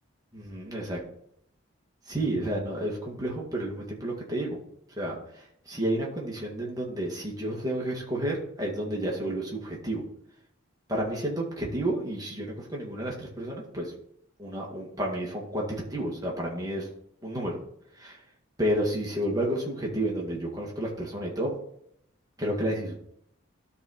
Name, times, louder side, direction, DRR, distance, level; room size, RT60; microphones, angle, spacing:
voice 1, 0.3-1.0 2.1-4.6 5.0-5.1 5.7-10.0 10.9-13.9 14.4-16.9 17.2-17.6 18.0-18.2 18.6-21.5 22.4-23.0, right 1 dB, 20° right, -3 dB, 2.0 m, -31 dB
12.5 x 4.2 x 4.3 m, 0.70 s
head